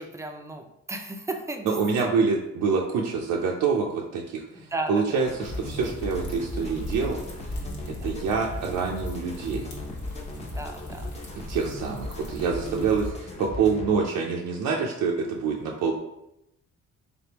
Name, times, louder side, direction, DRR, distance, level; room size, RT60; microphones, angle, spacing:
voice 1, 0.0-2.2 4.5-5.3 7.9-8.1 10.4-11.2 12.6-13.0, right 2 dB, 10° right, 5 dB, 0.4 m, -36 dB
voice 2, 1.8-7.2 7.4-7.6 7.9-9.7 11.5-15.9, right 5 dB, 80° right, -2 dB, 0.6 m, -26 dB
sound 1, 5.2-13.9, left 2 dB, 20° left, 0.8 m, -37 dB
sound 2, 5.4-13.1, left 1 dB, 75° left, 1.1 m, -40 dB
3.7 x 3.4 x 2.9 m, 0.83 s
cardioid pair, 90°, 30 cm